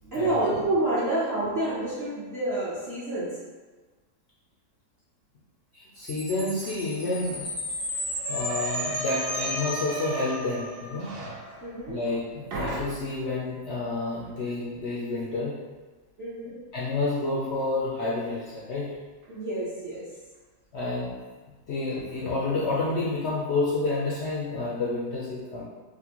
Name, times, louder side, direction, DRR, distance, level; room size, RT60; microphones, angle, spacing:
voice 1, 0.0-3.3 11.6-12.0 16.2-16.6 19.3-20.1 22.0-22.1, right 2 dB, 55° right, -11 dB, 0.7 m, -28 dB
voice 2, 5.7-7.5 8.3-11.1 11.9-15.5 16.7-18.9 20.7-21.1 21.7-25.6, left 2 dB, 75° left, -7 dB, 0.6 m, -29 dB
Chime, 6.1-10.6, left 1 dB, 5° right, 0.4 m, -34 dB
sound 1, 6.6-6.7 7.0-12.2 12.5-13.3, right 2 dB, 70° right, 1.2 m, -36 dB
4.2 x 2.1 x 2.9 m, 1.3 s
omnidirectional pair, 1.8 m